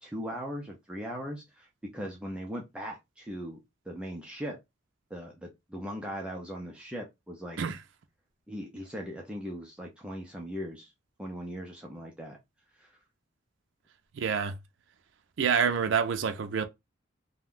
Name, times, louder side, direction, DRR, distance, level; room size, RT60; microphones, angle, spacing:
voice 1, 0.0-3.6 3.9-4.6 5.1-7.6 8.5-10.9 11.2-12.4 12.8-13.0, equal, 5° right, 0.4 m, -39 dB
voice 2, 14.1-14.6 15.4-16.6, right 6 dB, 65° right, 0.4 m, -27 dB
2.5 x 2.2 x 3.5 m
head